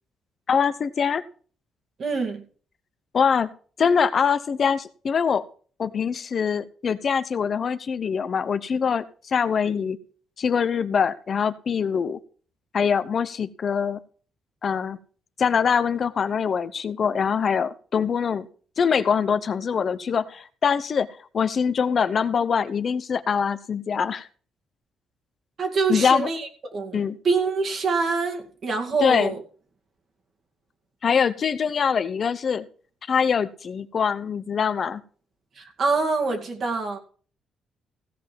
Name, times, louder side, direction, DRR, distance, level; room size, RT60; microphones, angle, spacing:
voice 1, 0.5-1.2 3.1-3.5 3.8-5.4 5.8-10.0 10.4-12.2 12.7-14.0 14.6-15.0 15.4-18.5 18.8-21.1 21.3-24.3 25.9-26.3 26.9-27.2 29.0-29.3 31.0-32.6 33.1-35.0, left 6 dB, 50° left, 0.8 m, -23 dB
voice 2, 2.0-2.4 25.6-26.5 26.7-29.4 35.6-37.0, right 4 dB, 50° right, 2.4 m, -25 dB
16.0 x 5.4 x 5.9 m
cardioid pair, 90°, 0 cm